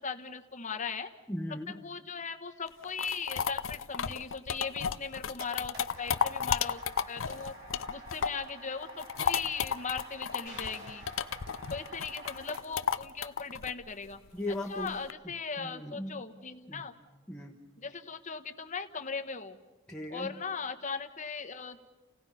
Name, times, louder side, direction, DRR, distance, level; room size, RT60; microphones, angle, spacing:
voice 1, 0.0-1.1 1.8-6.8 7.1-7.5 7.9-11.1 11.7-14.2 14.7-16.9 17.8-19.6 20.1-21.8, left 5 dB, 35° left, 7 dB, 1.2 m, -38 dB
voice 2, 1.3-1.8 14.3-15.0 15.2-16.2 16.7-16.9 17.3-17.6 19.9-20.3, left 1 dB, 5° left, -1 dB, 1.3 m, -38 dB
sound 1, 2.7-8.5 8.8-15.1, left 7 dB, 70° left, 0.6 m, -33 dB
sound 2, 5.0-13.0, right 2 dB, 50° right, 3.7 m, -50 dB
sound 3, 10.5-12.2, right 1 dB, 65° right, 7.2 m, -54 dB
30.0 x 17.5 x 5.7 m, 1.2 s
head